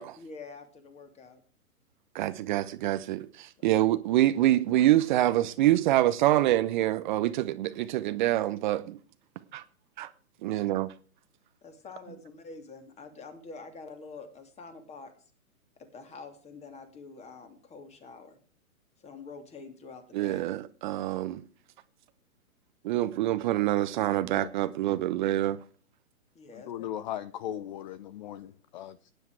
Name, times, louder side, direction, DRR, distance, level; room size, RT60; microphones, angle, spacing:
voice 1, 0.2-1.4 3.6-3.8 10.5-10.7 11.6-15.1 15.9-18.4 19.0-20.5 26.3-26.9, left 4 dB, 15° left, 2.6 m, -46 dB
voice 2, 2.1-9.0 9.5-9.6 10.0-10.1 10.4-10.9 20.1-21.4 22.8-25.6, right 14 dB, 35° right, 0.9 m, -26 dB
voice 3, 26.5-29.1, left 11 dB, 30° left, 0.6 m, -38 dB
18.5 x 10.0 x 4.7 m
hypercardioid pair, 130°, 43 cm